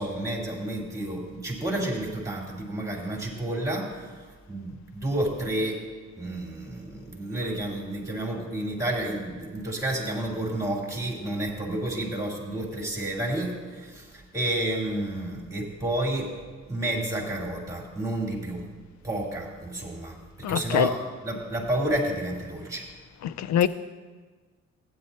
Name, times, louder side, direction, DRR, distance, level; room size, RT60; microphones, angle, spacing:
voice 1, 0.0-3.9 4.5-5.8 6.2-16.3 16.7-18.6 19.0-21.0 21.2-22.9, right 1 dB, 10° right, 2.9 m, -30 dB
voice 2, 20.4-20.9 23.2-23.7, left 10 dB, 65° left, 0.5 m, -24 dB
15.0 x 9.8 x 2.8 m
cardioid pair, 90°, 30 cm